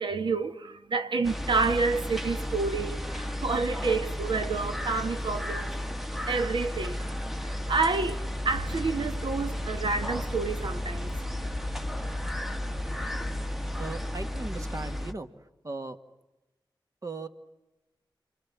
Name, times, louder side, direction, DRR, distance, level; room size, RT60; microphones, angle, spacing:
voice 1, 0.0-5.7 6.3-11.2, right 4 dB, 80° right, 1.5 m, -29 dB
sound 1, 1.2-15.1, left 1 dB, 5° right, 1.4 m, -33 dB
sound 2, 8.4-13.9, left 3 dB, 40° left, 1.0 m, -44 dB
voice 2, 13.8-16.0 17.0-17.3, right 3 dB, 40° right, 1.9 m, -38 dB
28.5 x 25.0 x 7.5 m
wide cardioid pair, 65°, 8 cm